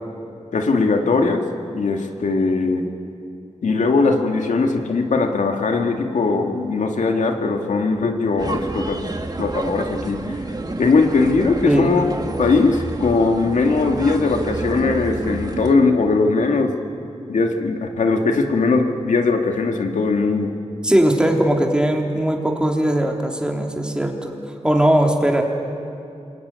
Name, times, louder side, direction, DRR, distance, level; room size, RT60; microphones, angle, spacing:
voice 1, 0.5-1.5 1.7-2.9 3.6-9.0 9.4-10.4 10.8-12.0 12.4-16.8 17.3-20.5, left 3 dB, 90° left, 4 dB, 2.2 m, -19 dB
sound 1, 8.4-15.7, right 2 dB, 35° right, 2.1 m, -29 dB
voice 2, 11.6-11.9 20.8-24.3 24.6-25.4, right 1 dB, 5° right, 1 dB, 3.6 m, -19 dB
27.0 x 22.5 x 9.7 m, 2.6 s
wide cardioid pair, 70°, 12 cm